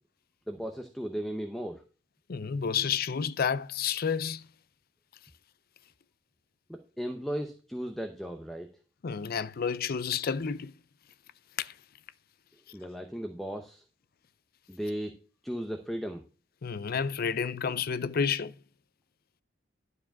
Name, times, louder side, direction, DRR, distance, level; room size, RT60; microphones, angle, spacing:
voice 1, 0.5-1.8 6.7-8.7 12.7-13.8 14.7-15.1 15.4-16.2, equal, ahead, 0.7 m, -36 dB
voice 2, 2.3-4.4 9.0-10.7 11.6-11.7 16.6-18.5, left 6 dB, 50° left, 0.5 m, -30 dB
11.5 x 4.8 x 5.8 m
head